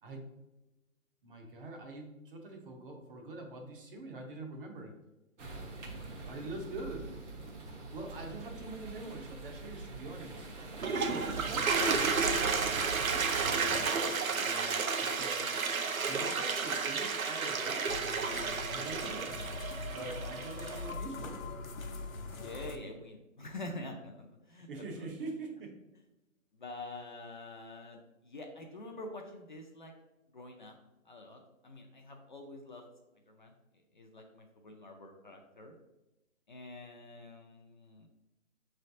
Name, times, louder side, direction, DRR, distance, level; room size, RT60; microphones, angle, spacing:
voice 1, 1.2-5.0 6.2-7.2 7.9-10.5 11.1-12.8 13.1-15.5 16.1-18.1 18.7-19.6 19.9-21.5 24.5-25.7, right 2 dB, 40° right, 2 dB, 0.9 m, -44 dB
sound 1, 5.4-14.1, right 3 dB, 60° right, 1.3 m, -43 dB
Toilet flush, 10.6-20.9, right 5 dB, 90° right, 0.7 m, -32 dB
sound 2, 17.9-22.8, left 3 dB, 75° left, 0.8 m, -42 dB
voice 2, 22.4-24.7 25.0-25.1 26.5-29.9 30.3-30.7 31.1-32.8 33.3-33.5 33.9-35.7 36.5-38.1, left 2 dB, 40° left, 2 dB, 0.4 m, -46 dB
6.2 x 3.2 x 2.6 m, 0.99 s
hypercardioid pair, 150°, 41 cm